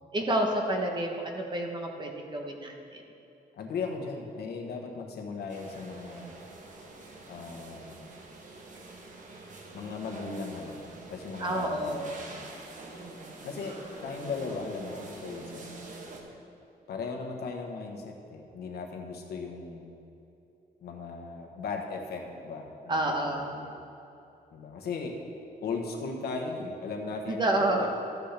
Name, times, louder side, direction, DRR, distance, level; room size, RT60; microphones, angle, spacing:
voice 1, 0.0-3.0 11.4-12.1 13.0-13.4 22.9-23.5 27.3-27.9, right 1 dB, 25° right, 2 dB, 1.0 m, -29 dB
voice 2, 3.6-6.3 7.3-8.1 9.7-12.5 13.4-13.8 14.0-15.8 16.9-20.0 20.8-23.8 24.5-25.1 25.6-27.9, left 4 dB, 75° left, 2 dB, 1.2 m, -37 dB
sound 1, 5.5-16.2, right 2 dB, 50° right, 1.2 m, -46 dB
13.5 x 8.1 x 3.4 m, 2.8 s
wide cardioid pair, 175°, 17 cm